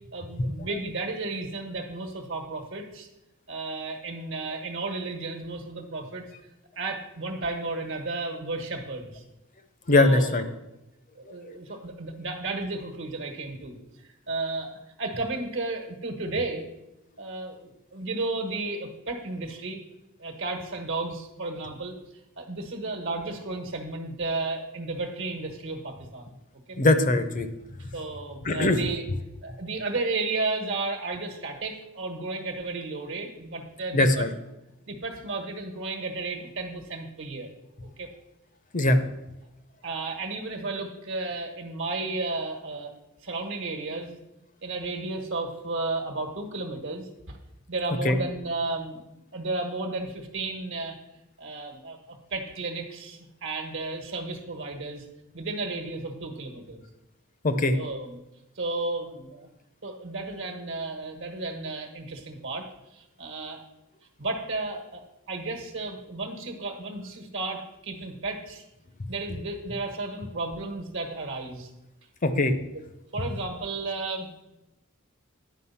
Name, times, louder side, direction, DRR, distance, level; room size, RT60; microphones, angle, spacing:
voice 1, 0.1-3.1 3.5-6.2 6.7-9.2 9.9-10.5 11.1-16.7 17.2-19.8 20.2-22.0 22.4-26.3 26.7-26.8 27.8-29.0 29.4-34.3 34.9-37.5 37.8-38.1 39.8-42.9 43.2-44.2 44.6-47.4 47.7-49.0 49.3-51.0 51.4-55.0 55.3-56.8 57.6-58.2 58.5-59.5 59.8-63.6 64.2-68.6 69.1-71.7 73.1-74.3, right 3 dB, 60° right, 3 dB, 1.3 m, -33 dB
voice 2, 9.9-10.4 11.5-11.6 26.8-27.5 28.4-28.8 33.9-34.3 38.7-39.0 48.0-48.2 57.4-57.8 72.2-72.6, left 2 dB, 35° left, 10 dB, 0.6 m, -21 dB
10.0 x 5.0 x 5.6 m, 0.93 s
head